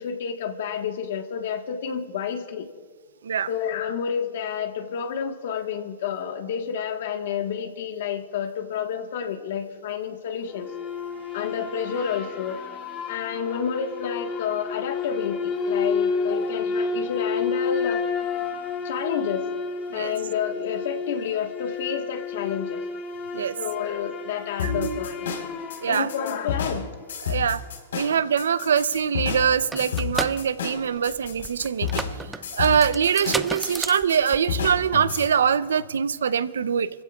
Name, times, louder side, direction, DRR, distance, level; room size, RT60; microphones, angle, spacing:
voice 1, 0.0-2.7 3.5-10.7 11.3-12.6 13.1-18.1 18.8-19.4 19.9-22.8 23.5-25.3 25.9-26.9, left 7 dB, 70° left, 5 dB, 1.4 m, -30 dB
sound 1, 10.5-27.1, left 5 dB, 30° left, 1.8 m, -31 dB
sound 2, 24.6-35.3, left 7 dB, 85° left, 4.1 m, -31 dB
voice 2, 24.6-25.0 25.8-26.1 27.2-27.6 27.9-36.9, right 7 dB, 90° right, 16 dB, 0.6 m, -23 dB
sound 3, 29.0-29.1 29.3-34.9, right 3 dB, 10° right, 0.4 m, -33 dB
25.0 x 15.5 x 2.4 m, 1.5 s
hypercardioid pair, 135°, 0 cm